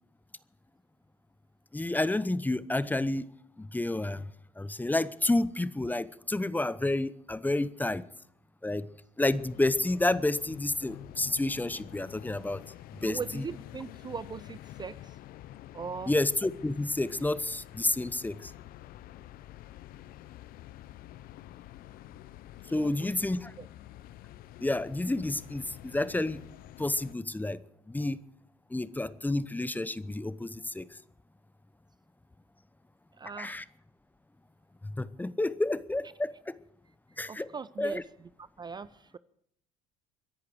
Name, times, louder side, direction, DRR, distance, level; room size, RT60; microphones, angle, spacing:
voice 1, 1.7-3.3 3.6-4.3 4.6-8.0 8.6-8.9 9.2-12.6 13.0-13.4 16.1-18.5 22.7-23.5 24.6-26.5 26.8-27.6 27.9-28.2 28.7-30.9 33.4-33.6 34.8-36.5 37.2-37.5 37.8-38.0, left 2 dB, 10° left, 0.8 m, -30 dB
sound 1, 9.2-27.1, left 14 dB, 55° left, 0.7 m, -48 dB
voice 2, 13.0-15.2 15.7-16.1 22.7-23.1 23.6-23.7 33.2-33.7 37.3-39.2, right 5 dB, 25° right, 0.6 m, -40 dB
24.5 x 11.0 x 4.7 m
hypercardioid pair, 70°, 18 cm